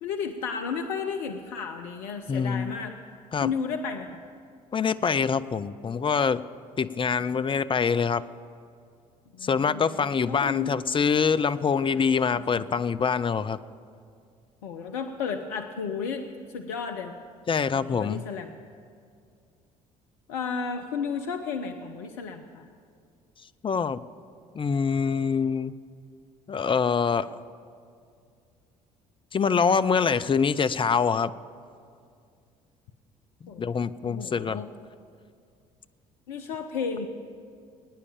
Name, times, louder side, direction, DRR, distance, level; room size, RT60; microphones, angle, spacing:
voice 1, 0.0-2.9 3.4-4.2 9.3-10.7 11.9-12.6 14.6-16.2 16.5-17.1 17.7-18.6 20.3-22.7 33.5-33.7 34.0-34.7 36.3-37.1, left 5 dB, 70° left, 5 dB, 0.8 m, -33 dB
voice 2, 2.3-2.8 3.3-3.5 4.7-6.4 6.8-8.2 9.4-13.6 17.5-18.2 23.6-24.0 24.5-25.7 26.5-27.3 29.3-31.3 33.6-34.6, left 6 dB, 25° left, 14 dB, 0.6 m, -25 dB
21.0 x 9.7 x 7.1 m, 2.3 s
figure-of-eight pair, 55°, 19 cm